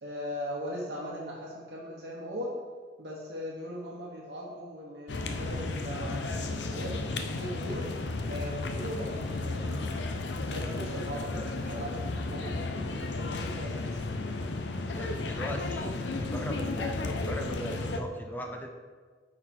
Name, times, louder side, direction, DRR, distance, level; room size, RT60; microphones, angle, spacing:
voice 1, 0.0-2.6 3.0-8.0 8.3-9.8 10.5-12.0 12.3-14.0, equal, 70° right, -4 dB, 1.1 m, -39 dB
sound 1, 5.1-18.0, left 2 dB, 80° left, 0.6 m, -33 dB
voice 2, 14.9-18.7, left 1 dB, 10° left, 3 dB, 0.7 m, -38 dB
9.0 x 4.4 x 4.3 m, 1.5 s
head